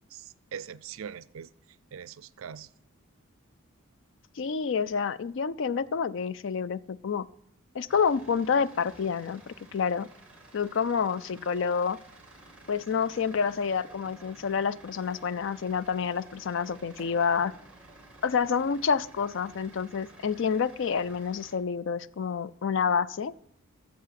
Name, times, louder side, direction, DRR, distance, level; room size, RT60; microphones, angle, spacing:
voice 1, 0.1-1.5 1.9-2.7, right 7 dB, 70° right, 0.4 m, -42 dB
voice 2, 4.4-7.3 7.7-10.1 10.5-12.0 12.7-17.5 18.2-23.3, left 6 dB, 55° left, 0.4 m, -28 dB
sound 1, 7.9-21.5, right 1 dB, 5° right, 2.2 m, -52 dB
14.0 x 7.2 x 5.8 m
head